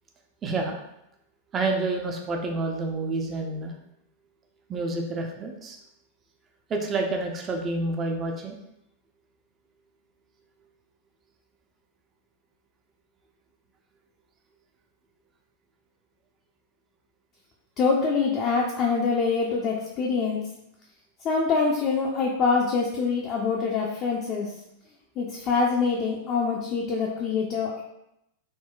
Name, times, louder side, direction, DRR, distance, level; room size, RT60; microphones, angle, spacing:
voice 1, 0.4-0.8 1.5-3.7 4.7-5.8 6.7-8.6, right 2 dB, 25° right, 2 dB, 0.4 m, -28 dB
voice 2, 17.8-20.4 21.2-24.5 25.2-27.8, left 4 dB, 35° left, -2 dB, 0.4 m, -25 dB
3.7 x 2.1 x 2.3 m, 0.83 s
figure-of-eight pair, 90°, 0 cm